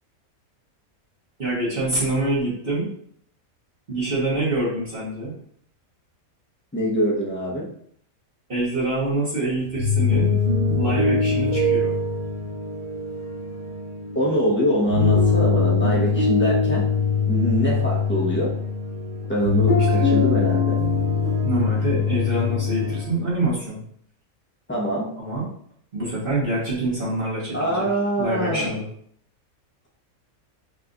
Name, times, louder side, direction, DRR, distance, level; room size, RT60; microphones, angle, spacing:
voice 1, 1.4-2.9 3.9-5.3 8.5-10.4 10.7-12.0 19.9-20.1 21.4-23.8 25.2-25.5 25.9-27.9 28.2-28.9, right 2 dB, 40° right, -8 dB, 1.7 m, -25 dB
voice 2, 6.7-7.7 14.1-16.9 17.2-18.6 19.3-20.8 24.7-25.1 27.5-28.7, equal, 10° left, -4 dB, 1.1 m, -24 dB
sound 1, 9.6-23.0, left 4 dB, 55° left, 2.2 m, -22 dB
5.5 x 3.4 x 2.6 m, 0.62 s
omnidirectional pair, 1.5 m